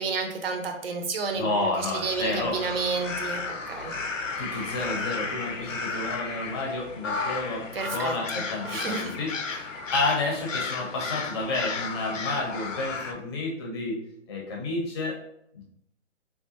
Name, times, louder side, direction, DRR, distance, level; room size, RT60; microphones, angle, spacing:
voice 1, 0.0-3.4 3.7-3.9 7.7-8.2 8.6-9.2, right 4 dB, 50° right, 4 dB, 0.7 m, -30 dB
voice 2, 1.3-2.6 4.4-14.0 14.3-15.1 15.5-15.6, left 2 dB, 20° left, -2 dB, 0.6 m, -30 dB
sound 1, 2.0-13.1, left 4 dB, 85° left, 0.6 m, -34 dB
3.8 x 2.3 x 2.7 m, 0.74 s
figure-of-eight pair, 140°, 37 cm